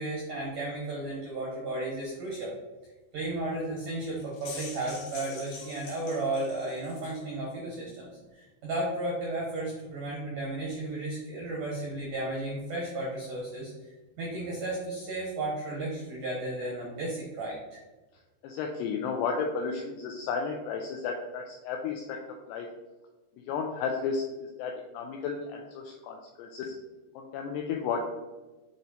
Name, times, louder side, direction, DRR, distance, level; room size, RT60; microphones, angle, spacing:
voice 1, 0.0-2.5 3.1-13.9 14.2-17.8, right 2 dB, 80° right, -3 dB, 1.8 m, -34 dB
sound 1, 4.2-7.2, left 4 dB, 65° left, 2.4 m, -45 dB
voice 2, 18.4-22.2 22.5-22.7 23.4-26.7 27.2-28.1, left 5 dB, 85° left, 2 dB, 2.4 m, -33 dB
8.1 x 3.1 x 4.0 m, 1.2 s
omnidirectional pair, 5.4 m